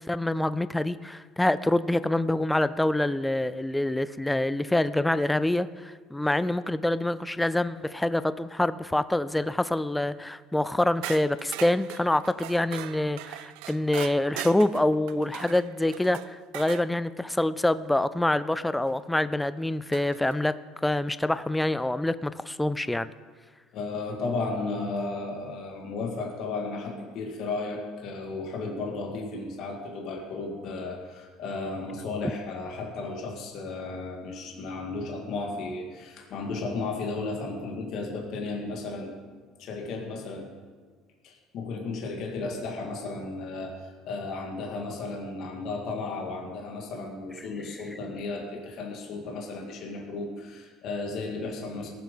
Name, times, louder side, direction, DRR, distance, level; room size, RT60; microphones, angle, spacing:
voice 1, 0.1-20.5 20.8-23.1, left 1 dB, 5° left, 14 dB, 0.3 m, -26 dB
sound 1, 11.0-16.9 18.9-19.0 19.9-20.4, right 14 dB, 85° right, 0.5 m, -40 dB
voice 2, 23.7-39.1 39.6-40.5 41.2-51.9, left 3 dB, 50° left, 1 dB, 2.0 m, -34 dB
18.5 x 7.6 x 5.5 m, 1.5 s
cardioid pair, 160°, 0 cm